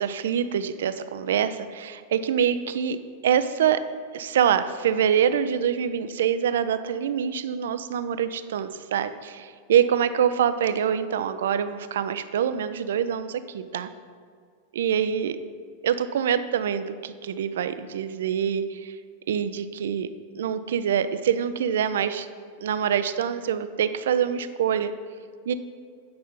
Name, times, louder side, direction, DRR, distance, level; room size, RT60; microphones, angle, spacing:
voice 1, 0.0-3.0 3.2-3.8 4.1-13.9 14.7-15.4 15.8-18.9 19.3-20.1 20.3-22.3 22.6-24.9 25.5-25.6, right 8 dB, 60° right, 12 dB, 0.4 m, -25 dB
8.8 x 5.5 x 5.2 m, 2.1 s
figure-of-eight pair, 90°, 0 cm